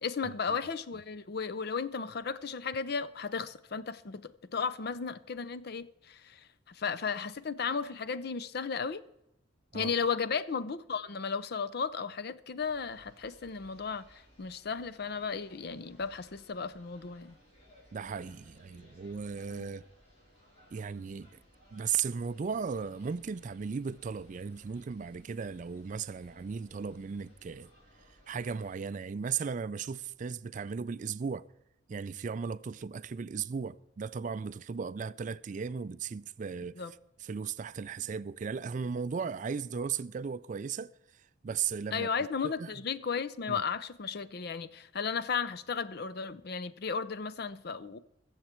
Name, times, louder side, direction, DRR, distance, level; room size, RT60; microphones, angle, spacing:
voice 1, 0.0-9.0 9.7-17.4 19.6-19.7 36.8-36.9 41.9-48.0, left 5 dB, 55° left, 0.6 m, -35 dB
sound 1, 12.6-28.7, equal, 35° left, 4.2 m, -61 dB
voice 2, 17.9-19.8 20.7-21.3 21.7-27.7 28.3-31.5 31.9-36.8 37.2-40.9 41.4-42.1 42.4-42.7 43.5-43.6, right 6 dB, 40° right, 0.4 m, -36 dB
22.0 x 7.4 x 4.4 m
head